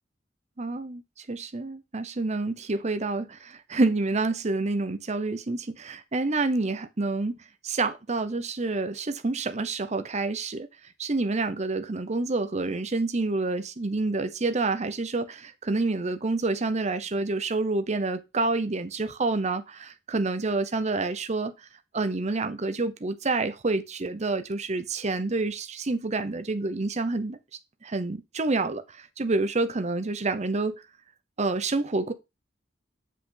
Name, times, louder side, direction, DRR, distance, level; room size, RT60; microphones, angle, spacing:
voice 1, 0.6-1.0 1.3-7.4 7.6-10.7 11.0-21.5 21.9-27.4 27.8-28.8 29.2-30.8 31.4-32.1, right 3 dB, 40° right, 0.7 m, -28 dB
7.4 x 5.6 x 3.8 m
head